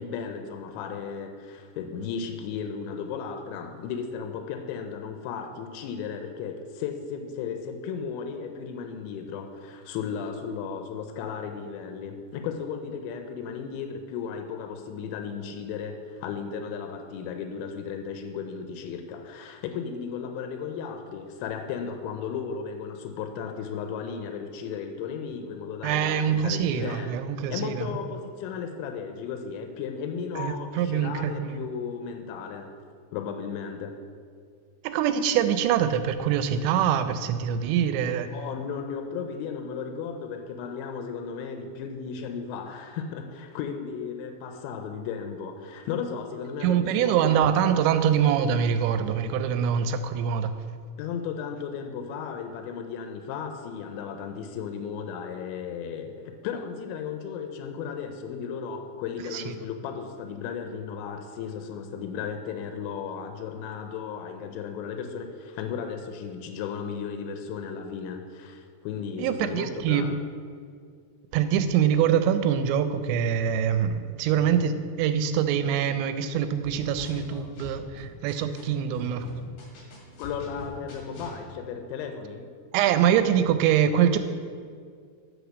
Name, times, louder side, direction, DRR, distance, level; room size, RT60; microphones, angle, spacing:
voice 1, 0.0-27.2 27.5-32.8 33.1-34.0 38.3-47.5 47.9-48.0 51.0-70.2 80.2-82.5, left 6 dB, 85° left, 6 dB, 2.9 m, -35 dB
voice 2, 25.8-27.9 30.4-31.6 34.8-38.3 46.6-50.5 59.3-59.5 69.2-70.1 71.3-79.4 82.7-84.2, right 9 dB, 85° right, 10 dB, 2.9 m, -24 dB
sound 1, 76.6-78.6 78.9-81.4, left 1 dB, 55° left, 3.1 m, -42 dB
8.1 x 6.5 x 6.2 m, 2.1 s
omnidirectional pair, 5.1 m